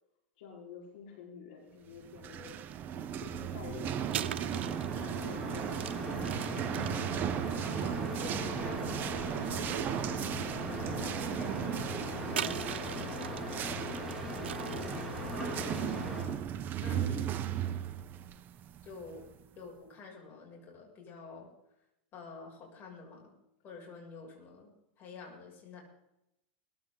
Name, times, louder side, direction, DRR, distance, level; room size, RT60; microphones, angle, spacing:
voice 1, 0.4-2.6 3.2-5.8 10.7-11.4 14.7-15.1 16.8-17.2, left 6 dB, 70° left, -1 dB, 5.0 m, -49 dB
sound 1, 2.1-19.5, right 9 dB, 35° right, 1.0 m, -37 dB
sound 2, 2.5-2.7 4.1-8.8 9.4-10.0 10.4-10.5 12.3-13.5 13.9-15.0, right 10 dB, 90° right, 0.9 m, -41 dB
sound 3, 3.6-16.2, right 1 dB, 5° right, 6.3 m, -39 dB
voice 2, 6.9-7.5 7.8-10.1 10.8-13.7 16.8-17.2 17.5-17.8 18.8-21.5 22.1-23.4 23.6-25.8, left 4 dB, 35° left, -1 dB, 7.5 m, -49 dB
20.5 x 15.5 x 4.0 m, 0.84 s
supercardioid pair, 130°, 6 cm